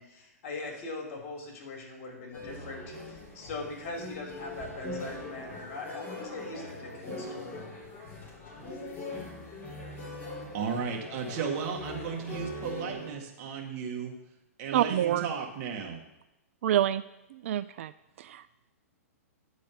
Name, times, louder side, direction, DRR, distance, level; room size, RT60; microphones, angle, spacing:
voice 1, 0.0-7.7, left 2 dB, 50° left, 0 dB, 3.1 m, -41 dB
sound 1, 2.3-13.1, left 2 dB, 20° left, 3.8 m, -41 dB
voice 2, 10.5-14.1 14.6-16.0, right 6 dB, 40° right, 0 dB, 1.7 m, -34 dB
voice 3, 14.7-15.3 16.6-17.0 17.3-17.9 18.2-18.4, right 12 dB, 55° right, 14 dB, 0.3 m, -27 dB
10.5 x 4.1 x 6.9 m, 0.92 s
hypercardioid pair, 115°, 8 cm